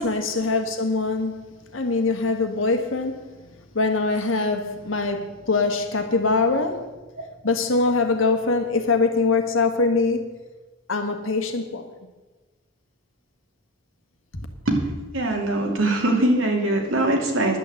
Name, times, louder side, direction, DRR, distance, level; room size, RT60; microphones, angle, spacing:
voice 1, 0.0-6.9 7.4-10.3 10.9-11.9 14.3-14.5, left 3 dB, 90° left, 6 dB, 1.6 m, -23 dB
voice 2, 15.1-17.6, right 1 dB, 90° right, 1 dB, 2.6 m, -22 dB
11.0 x 8.6 x 7.8 m, 1.2 s
head